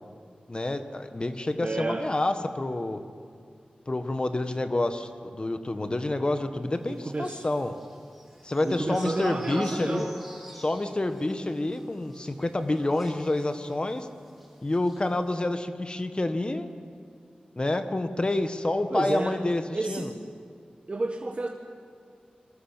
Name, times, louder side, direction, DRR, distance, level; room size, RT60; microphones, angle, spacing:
voice 1, 0.5-3.0 3.9-7.7 8.4-10.1 10.5-14.1 14.6-16.7 17.6-19.6 19.9-20.1, left 2 dB, 35° left, 8 dB, 1.5 m, -28 dB
voice 2, 1.6-2.1 6.9-7.5 8.6-10.1 18.9-19.4 19.7-20.2 20.9-21.5, right 2 dB, 45° right, 3 dB, 1.5 m, -31 dB
sound 1, 7.3-14.0 14.3-14.5 14.7-15.0, equal, ahead, 5.0 m, -43 dB
26.5 x 23.0 x 7.4 m, 2.3 s
wide cardioid pair, 75°, 3 cm